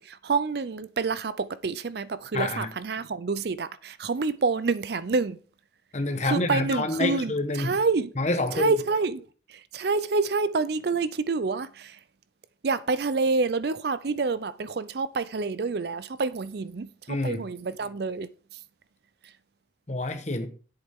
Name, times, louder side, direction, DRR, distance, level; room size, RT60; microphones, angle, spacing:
voice 1, 0.0-5.4 6.2-7.3 7.6-8.1 8.5-9.2 9.7-12.0 12.6-16.9 17.2-18.3, right 4 dB, 55° right, 0.5 m, -27 dB
voice 2, 2.3-2.7 5.9-7.8 8.2-8.8 17.1-17.4 19.9-20.5, left 2 dB, 35° left, 1.1 m, -27 dB
9.9 x 8.1 x 3.6 m
head